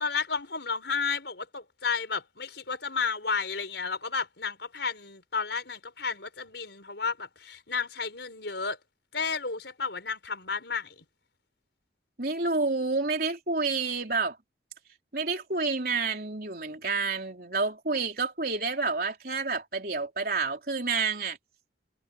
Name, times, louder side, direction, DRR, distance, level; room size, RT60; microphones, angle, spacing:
voice 1, 0.0-8.8 9.1-10.9, left 5 dB, 75° left, 4.6 m, -32 dB
voice 2, 12.2-14.4 15.1-21.4, right 4 dB, 55° right, 4.2 m, -29 dB
head